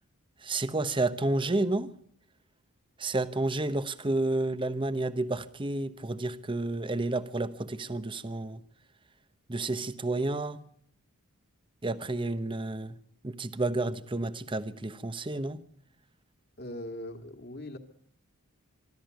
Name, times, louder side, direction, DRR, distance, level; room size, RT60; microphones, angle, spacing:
voice 1, 0.4-1.9 3.0-8.6 9.5-10.6 11.8-13.0 13.2-15.6, right 2 dB, 20° right, 0.9 m, -30 dB
voice 2, 16.6-17.8, left 1 dB, 45° left, 2.3 m, -40 dB
24.0 x 13.5 x 9.3 m
head